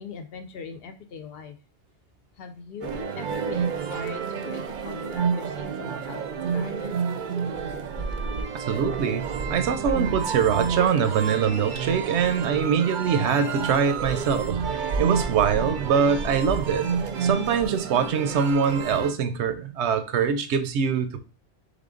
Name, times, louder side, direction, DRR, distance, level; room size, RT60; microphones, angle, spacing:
voice 1, 0.0-1.6 2.4-6.2 6.5-7.0, left 5 dB, 65° left, 8 dB, 0.8 m, -40 dB
sound 1, 2.8-19.1, right 6 dB, 55° right, 0.6 m, -29 dB
voice 2, 8.5-9.2 9.5-16.9 17.2-21.2, right 7 dB, 85° right, 10 dB, 0.9 m, -23 dB
3.7 x 3.6 x 3.7 m, 0.33 s
omnidirectional pair, 1.1 m